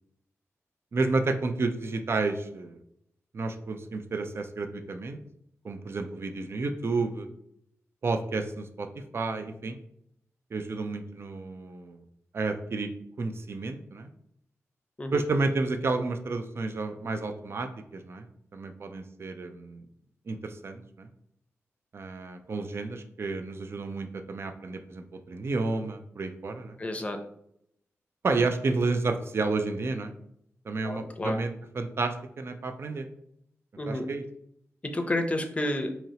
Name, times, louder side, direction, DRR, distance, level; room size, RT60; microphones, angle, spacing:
voice 1, 0.9-2.8 3.3-5.2 5.6-7.3 8.0-9.8 10.5-12.0 12.3-12.9 13.2-14.1 15.1-18.3 18.5-19.8 20.3-21.1 21.9-26.8 28.2-30.1 30.6-33.1 33.9-34.2, right 3 dB, 50° right, 7 dB, 0.5 m, -31 dB
voice 2, 26.8-27.2 30.8-31.4 33.8-34.1 34.8-35.9, left 1 dB, 25° left, 5 dB, 0.6 m, -30 dB
4.3 x 2.9 x 2.8 m, 0.73 s
wide cardioid pair, 85°, 5 cm